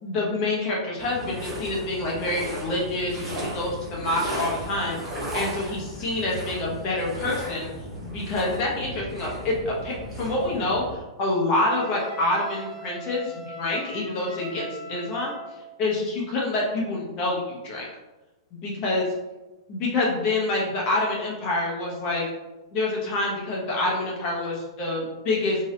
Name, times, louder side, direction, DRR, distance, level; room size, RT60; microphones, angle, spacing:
voice 1, 0.0-4.9 5.3-7.7 8.0-15.3 15.8-17.9 18.6-19.0 19.7-22.2 22.7-25.6, left 2 dB, 35° left, -3 dB, 1.0 m, -27 dB
sound 1, 1.0-10.9, equal, 15° right, 1.1 m, -35 dB
Wind instrument woodwind instrument, 11.7-15.6, right 2 dB, 60° left, 1.3 m, -39 dB
2.9 x 2.6 x 3.2 m, 1.1 s
hypercardioid pair, 135°, 3 cm